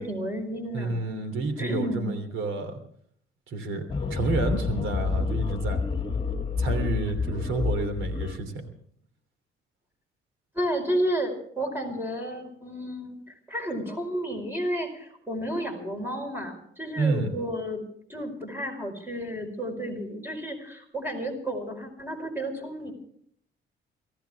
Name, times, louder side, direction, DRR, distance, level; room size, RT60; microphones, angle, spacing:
voice 1, 0.0-1.0 1.6-2.1 10.5-13.2 13.5-17.8 18.1-22.9, equal, 10° right, 3 dB, 4.9 m, -31 dB
voice 2, 0.7-2.8 3.5-5.8 6.6-8.7 17.0-17.3, right 3 dB, 80° right, 9 dB, 3.1 m, -29 dB
sound 1, 3.9-8.4, left 5 dB, 25° left, 1.9 m, -28 dB
24.5 x 14.5 x 3.5 m, 0.63 s
cardioid pair, 90°, 20 cm